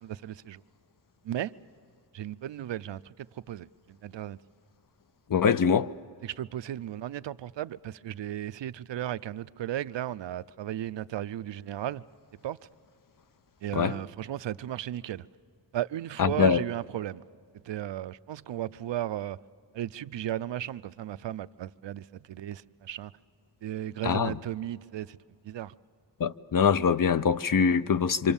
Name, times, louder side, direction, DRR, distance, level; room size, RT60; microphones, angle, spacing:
voice 1, 0.0-0.6 1.2-1.5 2.1-4.4 6.2-12.0 12.4-12.6 13.6-15.3 15.7-17.2 17.6-19.4 19.7-23.1 23.6-25.2 25.4-25.7, right 12 dB, 70° right, 0.5 m, -35 dB
voice 2, 5.3-5.9 13.7-14.0 16.2-16.6 24.0-24.4 26.2-28.3, left 6 dB, 50° left, 0.6 m, -24 dB
26.5 x 25.5 x 7.1 m
wide cardioid pair, 120°, 44 cm